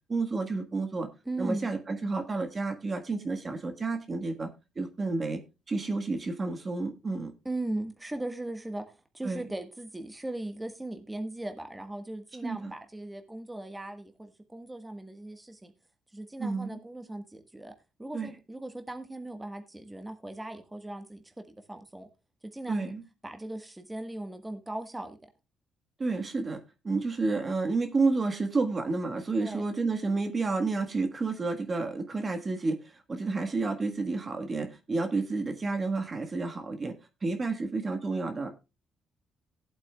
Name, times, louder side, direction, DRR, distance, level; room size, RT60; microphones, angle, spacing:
voice 1, 0.1-1.1 1.4-4.5 4.7-5.4 5.7-7.3 9.2-9.4 12.4-12.7 16.4-16.8 18.1-18.3 22.7-23.0 26.0-26.6 26.8-37.0 37.2-38.5, right 3 dB, 30° right, 1.5 m, -30 dB
voice 2, 1.2-1.7 7.4-15.7 16.1-17.7 18.0-22.1 22.4-22.9 23.2-25.2 29.4-29.6, right 2 dB, 10° right, 1.4 m, -38 dB
18.0 x 8.1 x 2.3 m
cardioid pair, 95°, 0 cm